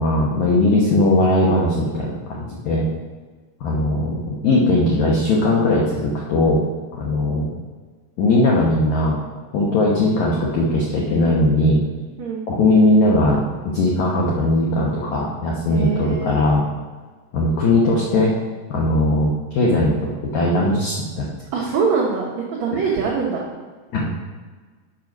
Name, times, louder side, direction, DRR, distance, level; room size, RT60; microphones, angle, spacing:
voice 1, 0.0-2.9 3.6-6.6 7.0-7.5 8.2-9.2 9.5-11.8 12.5-13.4 13.7-16.6 17.3-18.3 18.7-21.2 23.9-24.1, left 2 dB, 80° left, -3 dB, 1.6 m, -19 dB
voice 2, 15.7-16.4 21.5-23.4, right 5 dB, 85° right, -4 dB, 1.5 m, -23 dB
7.4 x 6.0 x 5.3 m, 1.4 s
omnidirectional pair, 4.8 m